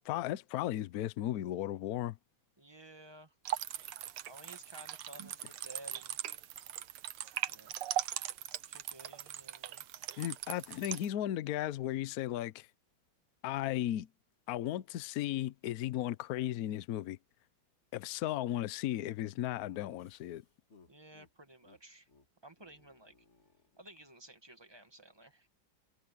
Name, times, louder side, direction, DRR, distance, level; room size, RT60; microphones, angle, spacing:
voice 1, 0.0-2.2 10.2-12.7 13.4-14.1 14.5-17.2 17.9-20.4, left 13 dB, 65° left, 0.9 m, -35 dB
voice 2, 2.6-3.3 4.3-6.2 7.5-7.7 8.7-9.9 20.9-22.1 22.4-23.1 23.8-25.5, right 2 dB, 15° right, 1.4 m, -54 dB
sound 1, 3.4-11.1, right 12 dB, 85° right, 1.8 m, -40 dB
Laughter, 19.5-21.3 21.6-21.8 22.1-22.3 22.5-24.1, left 4 dB, 35° left, 2.0 m, -62 dB
omnidirectional pair, 2.3 m